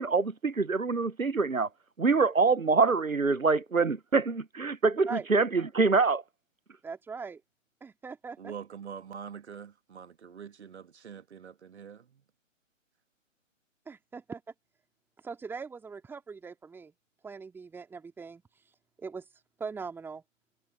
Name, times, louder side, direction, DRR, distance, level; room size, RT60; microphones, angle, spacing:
voice 1, 0.0-1.7 2.0-6.2, right 4 dB, 90° right, 1.1 m, -25 dB
voice 2, 6.8-7.4 7.8-8.5 13.9-14.4 15.2-16.9 17.2-18.4 19.0-19.2 19.6-20.2, right 5 dB, 5° right, 2.6 m, -40 dB
voice 3, 8.4-12.0, right 7 dB, 55° right, 1.6 m, -44 dB
figure-of-eight pair, 135°, 39 cm